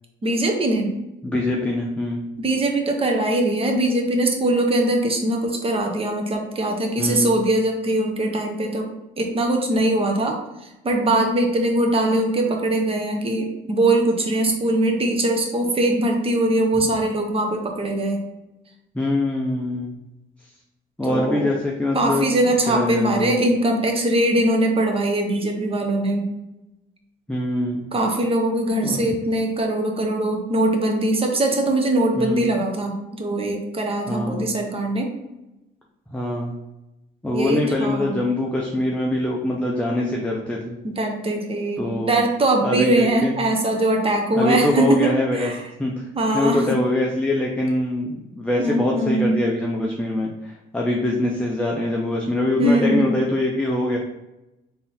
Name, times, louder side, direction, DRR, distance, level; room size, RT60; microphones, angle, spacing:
voice 1, 0.2-0.9 2.4-8.9 9.2-10.4 10.6-18.2 21.0-21.5 21.9-26.3 27.9-35.1 37.3-38.2 40.8-45.6 46.1-46.8 48.6-49.4 52.6-53.1, right 1 dB, 30° right, 2 dB, 0.9 m, -21 dB
voice 2, 1.2-2.2 7.0-7.4 18.9-20.0 21.0-23.3 27.3-27.8 28.8-29.0 32.2-32.5 34.1-34.6 36.1-36.6 37.2-40.8 41.8-42.1 42.6-43.4 44.4-45.5 45.8-46.1 46.3-54.0, left 1 dB, 5° left, -2 dB, 0.6 m, -23 dB
3.6 x 2.8 x 4.2 m, 0.95 s
cardioid pair, 90°, 20 cm